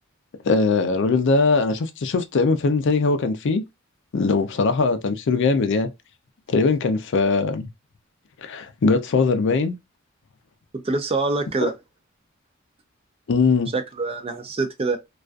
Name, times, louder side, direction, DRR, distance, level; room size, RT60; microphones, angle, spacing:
voice 1, 0.4-3.6 4.1-5.9 6.5-7.7 8.4-9.7 11.6-11.7 13.3-13.7, left 4 dB, 60° left, 0.4 m, -21 dB
voice 2, 10.7-11.7 13.7-15.0, right 3 dB, 30° right, 0.4 m, -25 dB
2.3 x 2.3 x 2.4 m
head